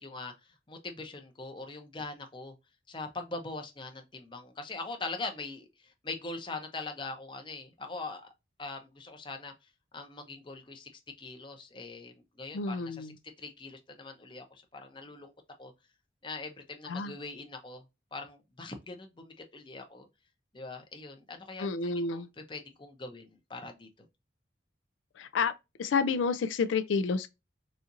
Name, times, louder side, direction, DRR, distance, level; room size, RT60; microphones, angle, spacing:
voice 1, 0.0-2.5 2.9-8.2 8.6-9.5 9.9-10.9 11.2-13.1 13.4-15.3 15.6-15.7 16.2-17.8 18.1-20.1 20.5-24.1, left 3 dB, 25° left, 0.7 m, -42 dB
voice 2, 12.5-13.1 16.9-17.1 21.6-22.3 25.2-25.5 25.8-27.3, left 5 dB, 85° left, 0.4 m, -29 dB
4.1 x 2.5 x 2.5 m
head